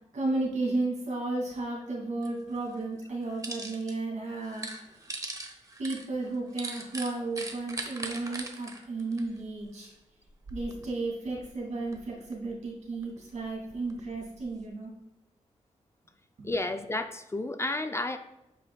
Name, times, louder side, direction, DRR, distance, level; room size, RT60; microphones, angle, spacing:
voice 1, 0.1-5.0 5.8-9.9 10.5-14.9 16.4-16.5, right 2 dB, 70° right, -3 dB, 2.2 m, -33 dB
sound 1, 2.2-2.3 2.7-3.9 4.3-9.8 10.2-10.9 11.3-12.5 13.0-14.6, right 2 dB, 25° right, 0.8 m, -40 dB
voice 2, 16.4-18.2, left 2 dB, 20° left, 8 dB, 0.3 m, -31 dB
8.5 x 5.0 x 2.3 m, 0.91 s
wide cardioid pair, 105°, 13 cm